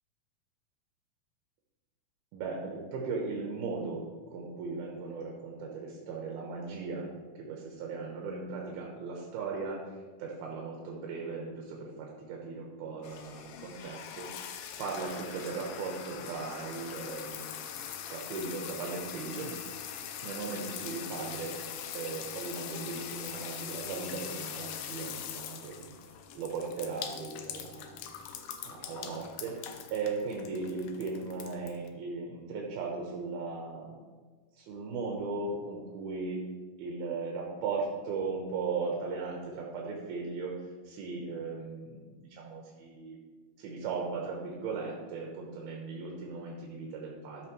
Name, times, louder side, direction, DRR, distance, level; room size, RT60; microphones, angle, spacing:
voice 1, 2.3-7.1 7.3-14.3 14.8-17.4 18.1-19.5 20.2-25.9 26.3-28.0 28.6-34.0 34.6-36.4 36.8-43.2 43.6-47.5, right 4 dB, 80° right, -1 dB, 2.9 m, -37 dB
sound 1, 13.0-31.9, left 8 dB, 80° left, 2.3 m, -42 dB
13.0 x 5.9 x 3.1 m, 1.4 s
omnidirectional pair, 4.4 m